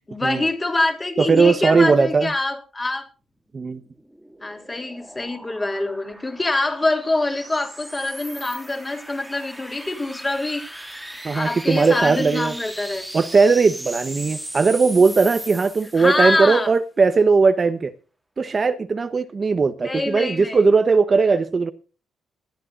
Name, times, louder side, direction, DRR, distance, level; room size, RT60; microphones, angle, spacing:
voice 1, 0.1-3.1 4.4-10.9 11.3-13.0 16.0-16.7 19.8-20.7, left 2 dB, 20° left, 3.5 m, -25 dB
voice 2, 1.2-2.3 3.5-3.8 11.2-12.5 13.1-17.9 18.4-21.7, right 4 dB, 35° right, 1.0 m, -18 dB
sound 1, 3.8-16.4, right 1 dB, 5° right, 2.3 m, -38 dB
20.5 x 13.0 x 2.6 m
cardioid pair, 90°, 0 cm